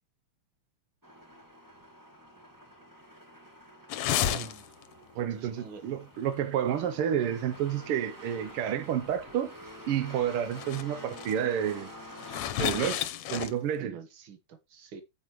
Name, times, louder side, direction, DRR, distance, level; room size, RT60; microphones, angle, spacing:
sound 1, 1.0-12.5, right 1 dB, 10° right, 1.2 m, -48 dB
sound 2, 3.9-4.9 5.2-5.4 6.2-6.4 6.8-6.9 7.5-7.6 9.3-9.4 10.1-10.2 10.5-10.8 11.1-11.3 12.1-13.7, left 11 dB, 70° left, 1.9 m, -32 dB
voice 1, 4.2-4.6 5.4-5.9 13.8-15.0, right 7 dB, 55° right, 1.7 m, -45 dB
voice 2, 5.2-9.5 9.9-11.9 12.6-13.0 13.3-14.0, right 9 dB, 75° right, 1.3 m, -30 dB
9.7 x 8.2 x 3.0 m
omnidirectional pair, 3.4 m